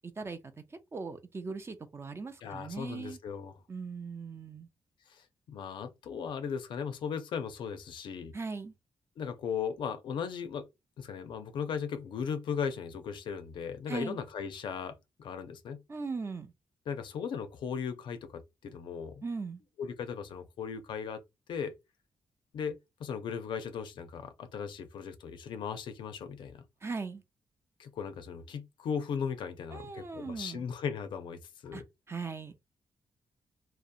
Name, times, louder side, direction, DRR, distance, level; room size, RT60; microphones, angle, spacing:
voice 1, 0.0-3.2 3.7-4.7 8.3-8.7 13.9-14.2 15.9-16.5 19.2-19.6 26.8-27.2 29.7-30.6 31.7-32.5, right 4 dB, 30° right, 0.4 m, -39 dB
voice 2, 2.4-3.6 5.1-8.3 9.2-10.7 11.0-15.8 16.9-19.2 19.8-21.2 21.5-21.8 22.5-26.6 27.8-31.8, left 7 dB, 80° left, 0.4 m, -37 dB
2.6 x 2.0 x 2.5 m
cardioid pair, 75°, 8 cm